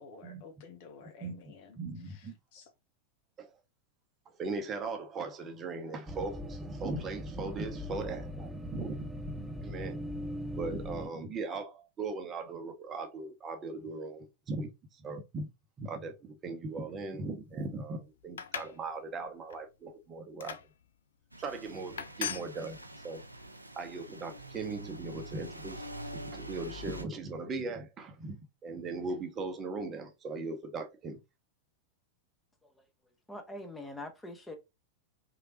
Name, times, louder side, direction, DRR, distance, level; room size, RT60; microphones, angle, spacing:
voice 1, 0.0-1.8 2.0-2.7, left 5 dB, 50° left, 0.9 m, -52 dB
voice 2, 1.2-2.3 3.4-3.5 4.3-10.0 10.6-15.5 15.8-20.6 21.4-23.2 23.7-25.8 26.1-31.2, right 3 dB, 25° right, 0.8 m, -39 dB
sound 1, 6.1-11.1, equal, 10° right, 0.5 m, -40 dB
sound 2, 18.2-18.8 19.3-19.6 20.4-20.7 21.4-21.6 22.0-22.5, left 8 dB, 65° left, 0.4 m, -38 dB
sound 3, 21.3-27.0, right 1 dB, 85° right, 0.5 m, -45 dB
voice 3, 33.3-34.5, left 1 dB, 10° left, 1.0 m, -43 dB
3.8 x 3.3 x 2.9 m
figure-of-eight pair, 90°, 0 cm